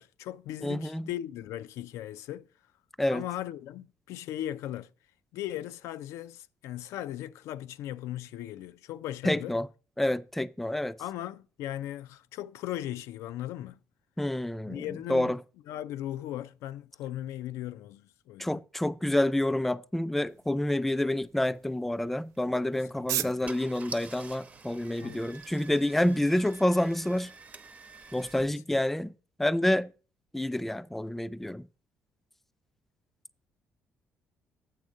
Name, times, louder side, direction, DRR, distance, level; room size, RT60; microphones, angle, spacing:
voice 1, 0.0-2.5 3.1-4.9 5.3-9.6 11.0-13.8 14.6-15.3 15.7-18.6 23.2-23.5 25.0-25.3, left 13 dB, 90° left, 0.4 m, -38 dB
voice 2, 0.6-1.1 3.0-3.2 9.2-9.7 10.0-11.0 14.2-15.4 18.4-27.3 28.1-29.1 29.4-29.9 30.3-31.7, left 1 dB, 5° left, 0.3 m, -28 dB
sound 1, 20.3-27.3, right 12 dB, 80° right, 0.5 m, -42 dB
Car / Engine starting, 22.3-22.6 23.2-23.3 23.4-28.4, right 3 dB, 30° right, 0.7 m, -47 dB
8.5 x 3.6 x 6.3 m
cardioid pair, 105°, 5 cm